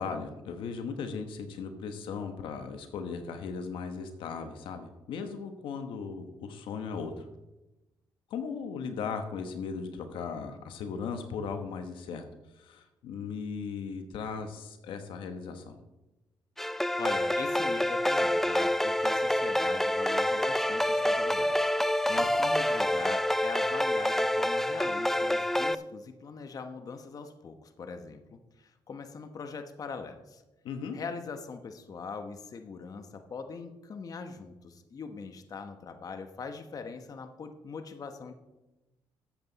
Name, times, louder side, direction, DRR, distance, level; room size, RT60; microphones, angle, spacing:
voice 1, 0.0-7.2 8.3-12.2 12.6-15.7 22.2-22.3 30.6-31.0, left 5 dB, 90° left, 7 dB, 1.2 m, -37 dB
sound 1, 16.6-25.8, left 1 dB, 5° left, 0.4 m, -27 dB
voice 2, 17.0-21.7 22.1-30.4 30.9-38.3, left 5 dB, 45° left, 7 dB, 1.0 m, -41 dB
13.0 x 8.0 x 4.1 m, 1.0 s
cardioid pair, 100°, 8 cm